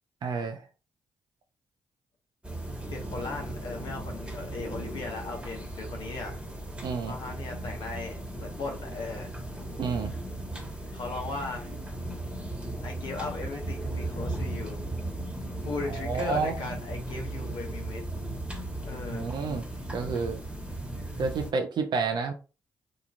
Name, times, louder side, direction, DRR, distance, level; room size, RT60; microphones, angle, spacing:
voice 1, 0.2-0.6 6.8-7.2 9.8-10.1 15.8-16.5 19.0-20.4 21.2-22.3, right 4 dB, 60° right, 0.4 m, -30 dB
sound 1, 2.4-21.5, right 1 dB, 10° right, 1.1 m, -36 dB
voice 2, 2.9-6.4 7.1-9.3 10.9-11.7 12.8-14.8 15.6-18.0 18.9-19.4, left 3 dB, 70° left, 0.7 m, -37 dB
2.9 x 2.3 x 2.4 m
hypercardioid pair, 45°, 9 cm